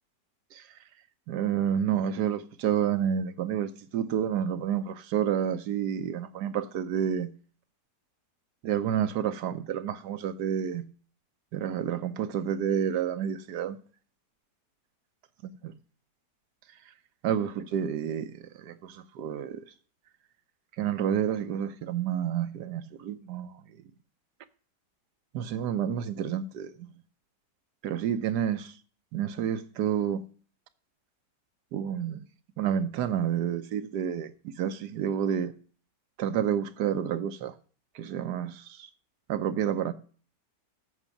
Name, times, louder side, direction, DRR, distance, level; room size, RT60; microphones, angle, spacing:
voice 1, 1.3-7.3 8.6-10.8 11.5-13.8 15.6-15.7 17.2-19.6 20.8-23.8 25.3-26.9 27.8-28.8 29.1-30.2 31.7-32.2 32.6-35.5 36.2-37.5 37.9-38.9 39.3-39.9, right 9 dB, 75° right, 1.3 m, -29 dB
8.1 x 5.7 x 7.1 m
omnidirectional pair, 1.8 m